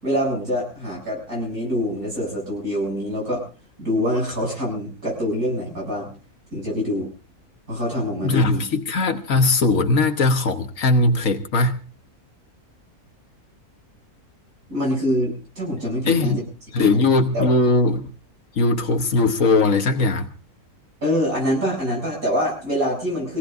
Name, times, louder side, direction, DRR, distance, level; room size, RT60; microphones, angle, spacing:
voice 1, 0.0-3.4 3.8-6.1 6.5-7.1 7.7-8.6 14.7-16.4 16.8-17.0 17.3-17.5 21.0-23.4, equal, 65° right, 8.3 m, -25 dB
voice 2, 8.2-11.8 16.1-16.5 16.7-18.1 18.6-20.3, left 3 dB, 60° left, 1.5 m, -19 dB
25.0 x 18.0 x 2.6 m
omnidirectional pair, 1.6 m